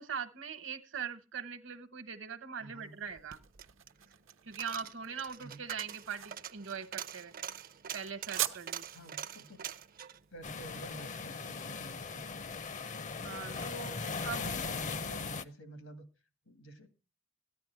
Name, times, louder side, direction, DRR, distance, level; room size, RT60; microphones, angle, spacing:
voice 1, 0.0-3.4 4.4-7.3 7.9-8.8 13.2-14.6, right 6 dB, 70° right, 1.1 m, -41 dB
voice 2, 2.6-3.0 5.4-5.6 8.9-9.6 10.3-12.3 14.3-16.1 16.5-16.9, right 1 dB, 85° left, 1.9 m, -50 dB
sound 1, 2.8-11.8, right 12 dB, 85° right, 1.0 m, -43 dB
Coin (dropping), 3.1-11.5 11.8-11.9, right 9 dB, 45° right, 0.5 m, -45 dB
sound 2, 10.4-15.4, left 4 dB, 40° left, 0.6 m, -39 dB
14.0 x 9.6 x 4.6 m
head